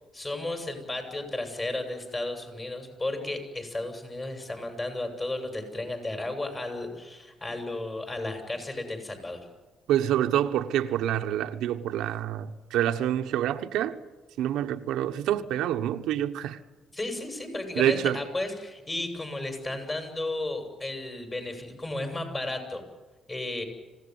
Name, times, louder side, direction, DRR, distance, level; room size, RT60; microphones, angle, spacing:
voice 1, 0.1-9.5 16.9-22.8 23.3-23.6, left 2 dB, 25° left, 7.3 m, -33 dB
voice 2, 9.9-14.0 14.4-16.6 17.8-18.2, right 11 dB, 90° right, 1.2 m, -27 dB
26.0 x 17.5 x 9.6 m
cardioid pair, 90°, 0 cm